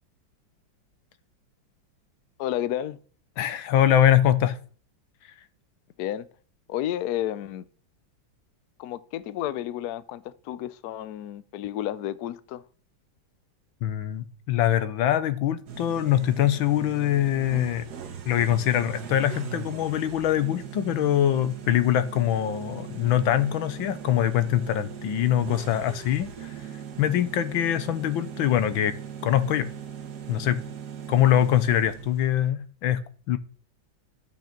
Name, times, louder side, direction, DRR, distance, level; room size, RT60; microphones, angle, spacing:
voice 1, 2.4-3.0 6.0-6.3 6.7-7.6 8.8-12.6, left 12 dB, 65° left, 1.0 m, -31 dB
voice 2, 3.4-4.6 13.8-17.9 18.2-26.5 27.0-28.9 29.2-29.7 30.3-30.6 31.1-33.4, left 11 dB, 85° left, 1.6 m, -23 dB
sound 1, 15.7-32.5, right 7 dB, 55° right, 1.7 m, -39 dB
12.0 x 6.5 x 5.8 m
omnidirectional pair, 2.2 m